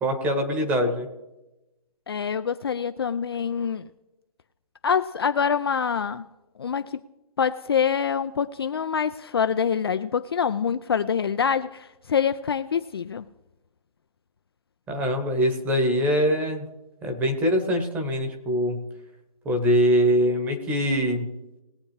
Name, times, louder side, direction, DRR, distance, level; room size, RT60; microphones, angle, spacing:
voice 1, 0.0-1.1 14.9-16.6 17.0-18.8 19.4-21.3, equal, 10° right, 4 dB, 1.1 m, -23 dB
voice 2, 2.1-3.9 4.8-6.2 6.6-7.0 7.4-13.3, left 7 dB, 40° left, 11 dB, 0.4 m, -25 dB
20.5 x 8.2 x 3.2 m, 0.98 s
hypercardioid pair, 160°, 19 cm